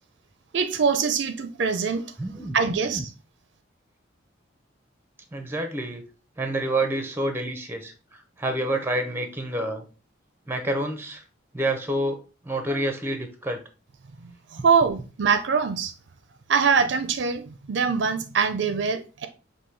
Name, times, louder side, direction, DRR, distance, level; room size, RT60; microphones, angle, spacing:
voice 1, 0.5-2.0 2.5-3.0 14.2-15.9 16.5-19.3, right 5 dB, 60° right, 0.4 m, -23 dB
voice 2, 2.2-3.0 5.3-6.0 6.4-7.9 8.4-9.8 10.5-11.2 11.5-13.6, right 1 dB, 10° right, 0.5 m, -28 dB
5.4 x 2.7 x 3.1 m
head